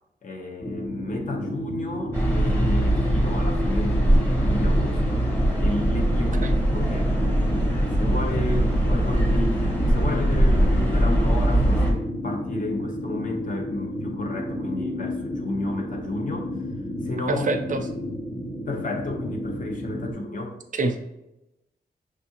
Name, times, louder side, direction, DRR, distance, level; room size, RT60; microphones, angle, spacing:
voice 1, 0.2-7.1 7.6-16.5 17.0-17.5 18.7-20.6, left 2 dB, 50° left, 2 dB, 0.7 m, -32 dB
sound 1, 0.6-20.1, left 1 dB, 80° left, 1.5 m, -32 dB
sound 2, 2.1-11.9, right 1 dB, 10° left, 0.9 m, -21 dB
voice 2, 17.3-17.8 20.7-21.1, right 3 dB, 50° right, 6 dB, 0.4 m, -25 dB
6.3 x 2.5 x 2.8 m, 0.90 s
wide cardioid pair, 175°, 18 cm